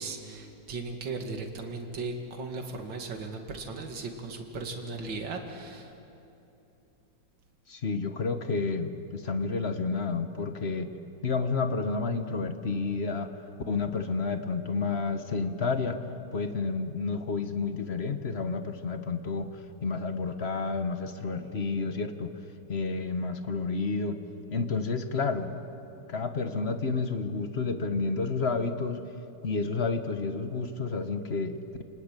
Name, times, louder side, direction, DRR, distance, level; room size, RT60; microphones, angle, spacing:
voice 1, 0.0-5.9, right 3 dB, 60° right, 3 dB, 2.9 m, -37 dB
voice 2, 7.7-10.9 11.2-13.3 13.7-16.0 16.3-19.5 19.8-22.3 22.7-24.2 24.5-25.5 26.1-29.0 29.4-31.8, left 4 dB, 35° left, 8 dB, 1.2 m, -30 dB
29.5 x 20.0 x 9.1 m, 2.9 s
omnidirectional pair, 2.2 m